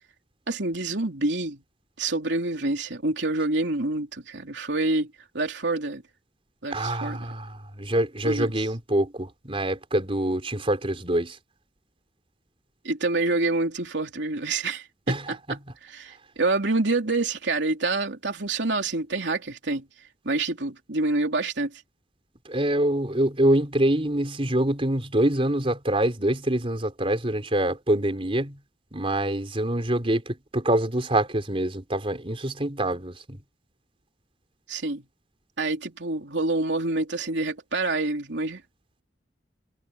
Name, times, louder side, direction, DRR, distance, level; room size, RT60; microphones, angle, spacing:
voice 1, 0.5-1.6 2.0-5.1 5.3-6.0 6.6-7.3 8.2-8.5 12.8-15.4 15.8-19.8 20.2-21.8 34.7-35.0 35.6-38.6, right 2 dB, 80° right, 3.2 m, -27 dB
voice 2, 6.7-11.4 15.1-15.6 22.5-28.6 28.9-33.4, right 1 dB, 30° right, 4.0 m, -25 dB
head